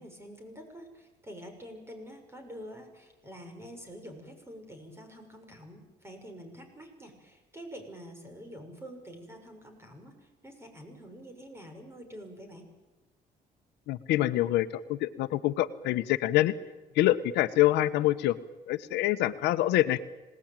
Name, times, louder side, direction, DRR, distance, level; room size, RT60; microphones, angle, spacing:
voice 1, 0.0-10.1 10.4-12.6, equal, 15° right, 5 dB, 6.5 m, -47 dB
voice 2, 13.9-16.5 16.9-18.4 18.7-20.0, left 15 dB, 85° left, 12 dB, 1.1 m, -26 dB
27.0 x 19.0 x 9.1 m, 1.1 s
cardioid pair, 110°, 17 cm